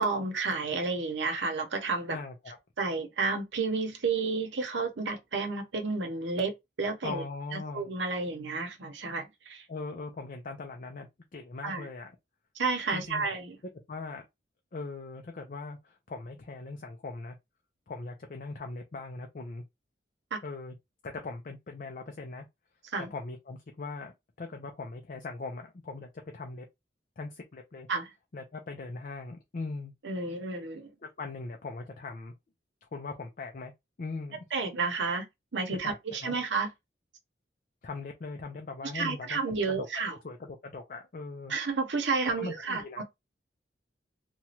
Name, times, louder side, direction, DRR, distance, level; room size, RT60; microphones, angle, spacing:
voice 1, 0.0-2.2 2.8-6.5 6.8-7.2 7.5-9.6 11.6-11.9 12.5-13.6 20.3-20.4 22.9-23.1 27.9-28.1 30.0-30.9 34.5-35.3 35.5-36.7 38.9-40.2 41.5-43.0, right 4 dB, 85° right, 0.8 m, -31 dB
voice 2, 2.1-2.6 7.0-7.9 9.7-12.1 12.9-13.4 13.9-14.2 14.7-17.4 17.9-19.6 20.4-20.7 21.0-22.5 23.0-26.6 27.2-27.9 28.3-29.9 31.0-32.3 32.8-33.7 34.0-34.4 35.8-36.3 37.8-39.4 39.7-41.5 42.4-43.0, left 3 dB, 50° left, 0.5 m, -40 dB
3.0 x 2.3 x 2.8 m
head